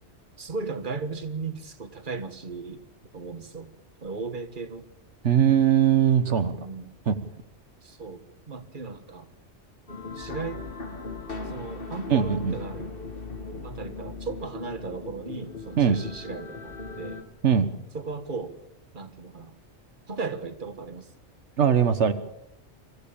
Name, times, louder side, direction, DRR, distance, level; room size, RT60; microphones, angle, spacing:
voice 1, 0.4-2.8 3.1-3.7 4.0-4.9 6.4-6.9 7.8-9.3 10.1-10.6 11.4-12.9 13.5-17.2 17.9-18.5 18.9-19.6 20.1-21.1, right 4 dB, 45° right, 10 dB, 1.7 m, -36 dB
voice 2, 5.2-6.5 7.1-7.2 12.1-12.5 15.8-16.0 17.4-17.7 21.6-22.1, right 8 dB, 80° right, 10 dB, 1.4 m, -20 dB
sound 1, 9.9-17.2, left 3 dB, 50° left, 2.2 m, -38 dB
25.0 x 14.5 x 8.6 m, 0.84 s
omnidirectional pair, 1.2 m